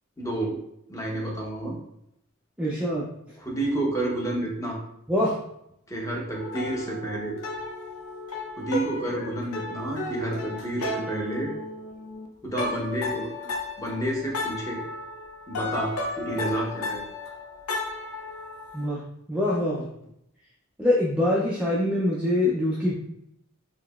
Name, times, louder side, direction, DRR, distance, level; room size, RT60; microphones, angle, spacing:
voice 1, 0.2-0.6 0.9-1.8 3.4-4.8 5.9-7.4 8.6-11.5 12.4-13.3 13.8-14.8 15.5-17.1, right 1 dB, 15° left, -3 dB, 0.8 m, -30 dB
voice 2, 2.6-3.0 5.1-5.4 18.7-19.0 19.3-19.9 20.8-22.9, left 1 dB, 5° right, -6 dB, 0.4 m, -24 dB
sound 1, 6.3-12.3 12.6-18.9, left 2 dB, 85° left, 0.5 m, -34 dB
3.8 x 2.9 x 2.3 m, 0.78 s
head